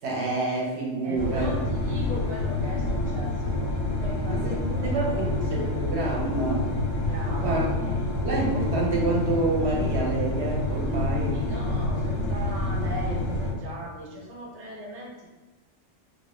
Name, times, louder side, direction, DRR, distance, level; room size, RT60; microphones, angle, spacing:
voice 1, 0.0-1.6 4.3-6.7 7.4-7.9 8.2-11.3, right 2 dB, 65° right, -3 dB, 0.8 m, -28 dB
voice 2, 1.0-3.7 4.0-5.3 7.0-7.7 11.3-15.3, equal, 50° right, -3 dB, 0.4 m, -39 dB
sound 1, 1.1-13.5, left 2 dB, 90° left, 1.0 m, -28 dB
2.3 x 2.1 x 2.9 m, 1.2 s
omnidirectional pair, 1.3 m